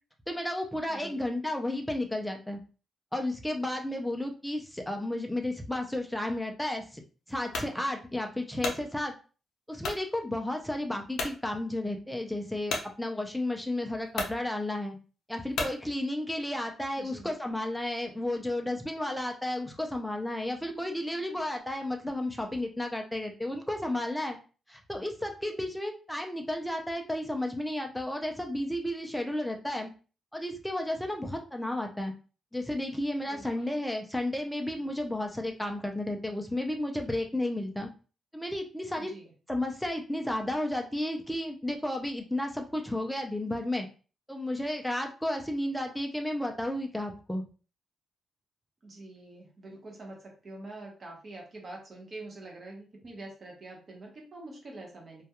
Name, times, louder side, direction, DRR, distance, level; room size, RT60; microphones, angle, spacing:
voice 1, 0.3-2.6 3.1-7.0 7.3-9.2 9.7-15.0 15.3-24.4 24.7-29.9 30.3-32.1 32.5-37.9 38.3-39.1 39.5-43.9 44.3-47.4, left 1 dB, 5° left, 2 dB, 0.3 m, -32 dB
voice 2, 0.9-1.2 17.0-17.4 33.2-33.7 39.0-39.3 48.8-55.2, right 2 dB, 35° right, -1 dB, 0.8 m, -45 dB
sound 1, 7.5-7.7 8.3-8.8 9.8-10.0 10.6-10.7 11.1-11.4 12.7-12.9 13.7-13.8 14.1-14.4 15.5-15.8, left 3 dB, 70° left, 0.5 m, -33 dB
2.2 x 2.2 x 2.8 m, 0.36 s
wide cardioid pair, 160°, 0 cm